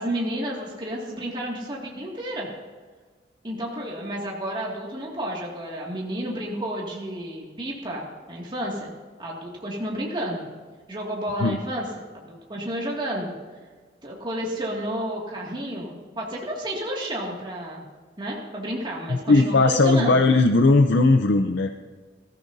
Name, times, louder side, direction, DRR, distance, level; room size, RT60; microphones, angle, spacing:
voice 1, 0.0-2.5 3.4-8.9 9.2-10.5 10.9-11.9 12.1-13.3 14.0-17.9 18.2-20.2, right 1 dB, 30° right, -3 dB, 2.2 m, -31 dB
voice 2, 19.1-21.7, left 3 dB, 80° left, 6 dB, 0.6 m, -18 dB
21.5 x 14.5 x 2.7 m, 1.5 s
head